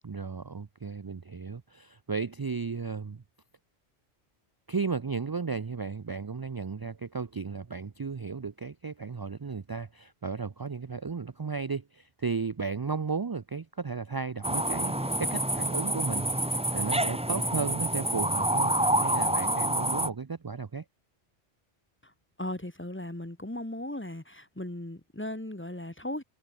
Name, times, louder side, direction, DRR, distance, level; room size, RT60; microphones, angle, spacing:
voice 1, 0.0-3.2 4.7-20.8, right 5 dB, 40° right, 0.3 m, -34 dB
sound 1, 14.4-20.1, right 1 dB, 5° right, 0.8 m, -27 dB
voice 2, 22.4-26.2, left 1 dB, 10° left, 1.2 m, -37 dB
omnidirectional pair, 1.2 m